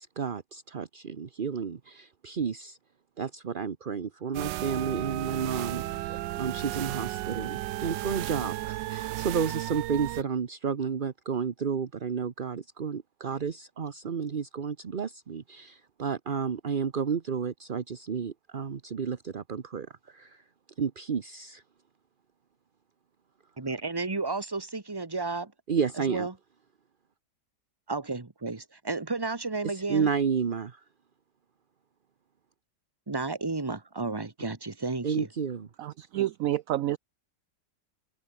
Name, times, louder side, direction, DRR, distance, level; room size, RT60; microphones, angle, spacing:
voice 1, 0.0-2.8 3.2-20.4 20.8-21.6 25.7-26.3 29.6-30.8 35.0-35.7, right 6 dB, 40° right, 0.9 m, -31 dB
sound 1, 4.3-10.2, right 16 dB, 90° right, 1.3 m, -34 dB
voice 2, 23.6-25.5 26.1-26.3 27.9-30.1 33.1-35.3, right 3 dB, 15° right, 1.4 m, -32 dB
voice 3, 35.8-37.0, right 14 dB, 70° right, 0.8 m, -29 dB
omnidirectional pair, 1.9 m